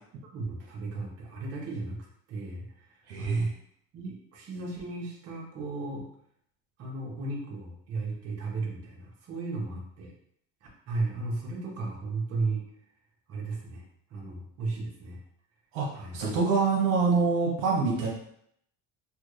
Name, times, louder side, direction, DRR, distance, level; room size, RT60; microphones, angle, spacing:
voice 1, 0.3-3.5 3.9-6.0 6.8-10.1 10.9-12.6 13.3-13.8 14.1-15.2 15.9-16.1, right 3 dB, 50° right, -2 dB, 1.1 m, -34 dB
voice 2, 3.1-3.5 15.7-18.1, right 4 dB, 85° right, -3 dB, 1.0 m, -26 dB
3.4 x 2.3 x 3.1 m, 0.69 s
cardioid pair, 120°, 31 cm